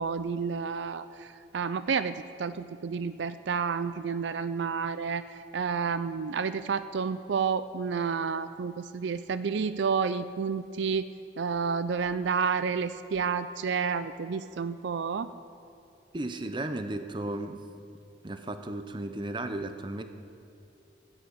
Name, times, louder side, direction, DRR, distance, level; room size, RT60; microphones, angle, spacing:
voice 1, 0.0-11.1 11.4-15.3, right 5 dB, 70° right, 13 dB, 0.4 m, -30 dB
voice 2, 16.1-17.6 18.2-20.0, right 1 dB, 25° right, 8 dB, 0.6 m, -34 dB
13.0 x 10.5 x 8.1 m, 2.7 s
head